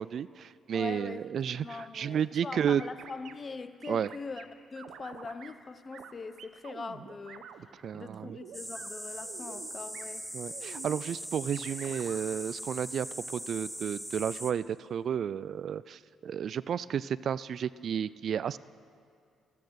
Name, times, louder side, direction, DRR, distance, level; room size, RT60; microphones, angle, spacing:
voice 1, 0.0-2.8 3.9-4.1 7.7-8.4 10.3-18.6, right 8 dB, 60° right, 18 dB, 0.3 m, -32 dB
voice 2, 0.7-1.3 1.5-7.5 7.9-10.2, left 4 dB, 35° left, 12 dB, 0.8 m, -42 dB
sound 1, 2.8-3.3 3.8-4.5 4.8-5.5 5.9-6.1 6.4-7.6 7.9-8.9 9.2-9.7 9.9-10.0 10.5-11.0 11.5-12.2, right 8 dB, 75° right, 0.9 m, -47 dB
sound 2, 8.5-14.5, equal, ahead, 1.0 m, -40 dB
25.0 x 8.7 x 6.4 m, 2.3 s
cardioid pair, 90°, 0 cm